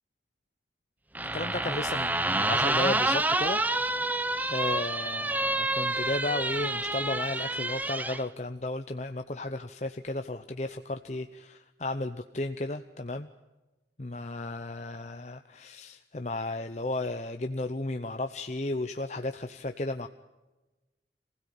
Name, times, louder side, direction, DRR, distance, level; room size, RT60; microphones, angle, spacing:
sound 1, 1.2-8.2, right 2 dB, 10° right, 0.7 m, -28 dB
voice 1, 1.3-3.6 4.5-13.3 14.0-20.1, left 2 dB, 40° left, 7 dB, 0.7 m, -34 dB
26.0 x 16.5 x 8.5 m, 1.1 s
head